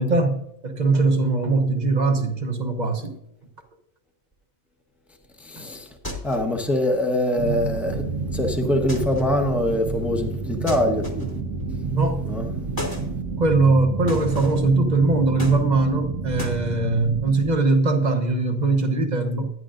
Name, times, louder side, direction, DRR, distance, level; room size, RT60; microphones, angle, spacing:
voice 1, 0.0-3.1 5.6-5.7 11.9-12.2 13.4-19.5, right 3 dB, 35° right, 0.9 m, -21 dB
voice 2, 5.4-5.9 6.2-8.0 8.3-11.3 12.3-12.5, left 1 dB, ahead, 0.8 m, -23 dB
sound 1, 6.0-6.6 8.9-9.4 10.7-11.5 12.8-13.1 14.1-14.7 15.4-16.0 16.4-16.6, left 1 dB, 15° left, 1.3 m, -34 dB
sound 2, 7.4-17.5, right 4 dB, 90° right, 1.4 m, -30 dB
11.0 x 9.8 x 2.5 m
omnidirectional pair, 1.4 m